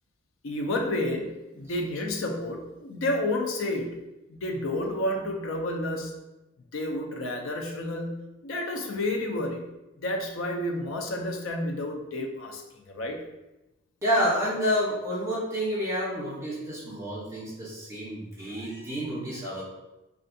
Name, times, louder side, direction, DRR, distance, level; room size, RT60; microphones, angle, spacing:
voice 1, 0.4-4.0 4.3-6.1 6.7-9.7 10.0-13.2, left 1 dB, 70° left, 3 dB, 0.5 m, -30 dB
voice 2, 14.0-19.6, equal, 15° right, -8 dB, 1.1 m, -29 dB
3.5 x 2.4 x 2.6 m, 0.99 s
head